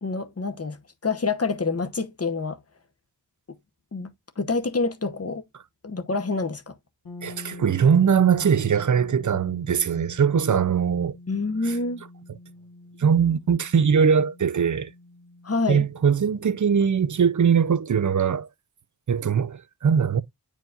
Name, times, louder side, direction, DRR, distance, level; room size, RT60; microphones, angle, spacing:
voice 1, 0.0-2.6 3.9-5.4 5.8-6.7 11.3-12.0 15.4-15.9, left 3 dB, 35° left, 1.0 m, -27 dB
sound 1, 7.0-16.8, left 2 dB, 55° left, 1.3 m, -45 dB
voice 2, 7.2-11.2 11.7-11.8 13.0-14.9 15.7-18.5 19.1-20.2, right 7 dB, 45° right, 0.5 m, -21 dB
9.4 x 4.6 x 2.5 m
wide cardioid pair, 80°, 42 cm